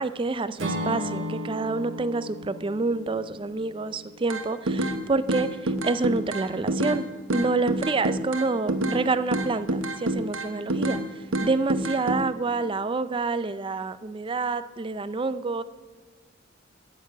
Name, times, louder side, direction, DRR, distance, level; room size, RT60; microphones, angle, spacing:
voice 1, 0.0-11.0 11.4-15.6, right 3 dB, 25° right, 14 dB, 0.4 m, -28 dB
Acoustic guitar / Strum, 0.6-4.7, left 1 dB, 70° right, 1.7 m, -35 dB
sound 1, 4.3-5.0 5.3-7.0 7.3-9.0 9.3-11.0 11.3-12.2, right 1 dB, 85° right, 1.1 m, -27 dB
13.0 x 6.7 x 7.9 m, 1.5 s
head